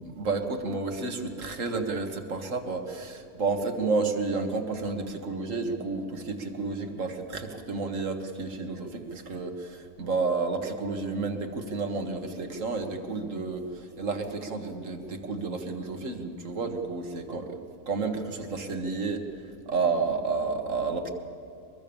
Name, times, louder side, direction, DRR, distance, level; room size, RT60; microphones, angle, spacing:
voice 1, 0.1-17.6 17.9-19.2 19.7-21.1, right 4 dB, 60° right, 5 dB, 2.0 m, -31 dB
23.5 x 22.0 x 7.1 m, 2.7 s
omnidirectional pair, 1.5 m